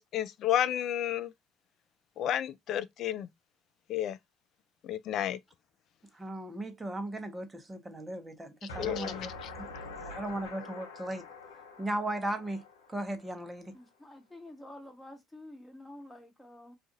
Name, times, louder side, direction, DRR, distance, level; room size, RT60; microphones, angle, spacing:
voice 1, 0.0-1.3 2.2-3.3 3.9-4.2 4.8-5.4 8.6-9.5, left 11 dB, 60° left, 0.4 m, -31 dB
voice 2, 6.2-9.3 9.6-9.7 10.0-11.2 11.8-12.6 12.9-13.7, right 1 dB, 15° right, 0.8 m, -37 dB
sound 1, 8.7-13.6, left 3 dB, 90° left, 0.7 m, -45 dB
voice 3, 13.7-16.8, left 1 dB, 10° left, 1.1 m, -49 dB
2.5 x 2.4 x 3.8 m
hypercardioid pair, 70°, 0 cm